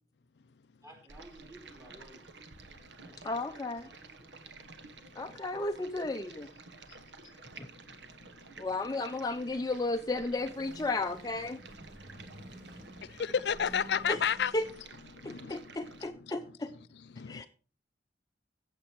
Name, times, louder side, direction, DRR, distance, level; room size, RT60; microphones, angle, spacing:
voice 1, 0.8-2.5 3.0-4.5 12.5-12.8, right 1 dB, 20° right, 4.4 m, -56 dB
Stream, 1.1-16.1, right 3 dB, 80° right, 1.3 m, -52 dB
voice 2, 3.2-3.9 5.2-6.5 7.6-7.7 8.6-11.6 14.1-14.2 14.5-14.7 15.2-16.7 17.3-17.5, left 2 dB, 20° left, 0.5 m, -34 dB
voice 3, 7.6-8.3 13.0-14.5 15.1-15.7 17.1-17.5, left 7 dB, 70° left, 0.5 m, -33 dB
je rubberman, 9.9-15.2, right 1 dB, 45° right, 2.6 m, -52 dB
15.5 x 7.6 x 4.5 m
head